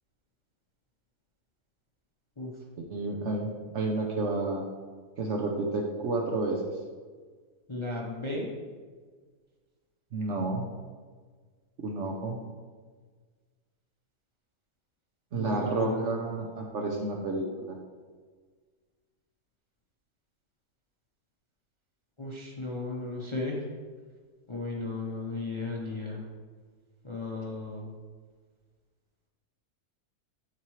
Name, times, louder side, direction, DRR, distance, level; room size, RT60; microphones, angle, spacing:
voice 1, 2.8-3.5 3.7-4.6 5.2-6.6 10.1-10.7 11.8-12.4 15.3-17.8, right 2 dB, 60° right, 1 dB, 0.9 m, -30 dB
voice 2, 7.7-8.5 15.3-16.1 22.2-23.7 24.5-26.2 27.0-27.9, left 2 dB, 25° left, -3 dB, 0.7 m, -35 dB
10.5 x 4.4 x 3.1 m, 1.5 s
omnidirectional pair, 1.7 m